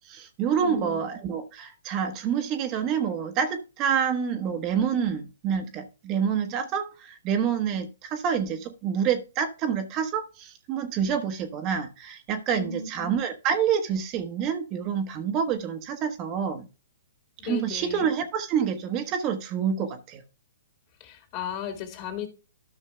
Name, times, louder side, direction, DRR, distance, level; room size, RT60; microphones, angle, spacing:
voice 1, 0.0-16.7 17.4-20.2, right 7 dB, 35° right, 1.2 m, -27 dB
voice 2, 0.6-1.0 12.5-13.1 17.4-18.1 21.0-22.3, left 7 dB, 40° left, 2.9 m, -35 dB
13.0 x 6.3 x 2.2 m
hypercardioid pair, 125°, 0 cm